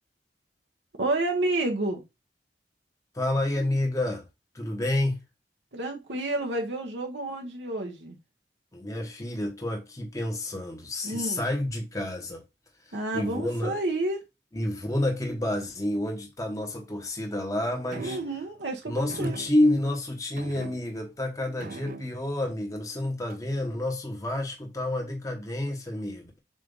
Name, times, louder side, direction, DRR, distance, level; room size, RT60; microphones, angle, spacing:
voice 1, 1.0-2.0 5.7-8.2 11.0-11.4 12.9-14.2 18.0-19.4, right 2 dB, 80° right, 1.1 m, -30 dB
voice 2, 3.1-4.2 4.5-5.2 8.7-12.4 12.8-13.8 14.5-18.2 18.9-26.4, left 1 dB, 20° left, 1.2 m, -29 dB
sound 1, 17.9-18.5 19.1-19.9 20.4-21.2 21.6-22.4 23.3-23.6, right 3 dB, 50° right, 0.6 m, -42 dB
7.5 x 2.6 x 5.3 m
head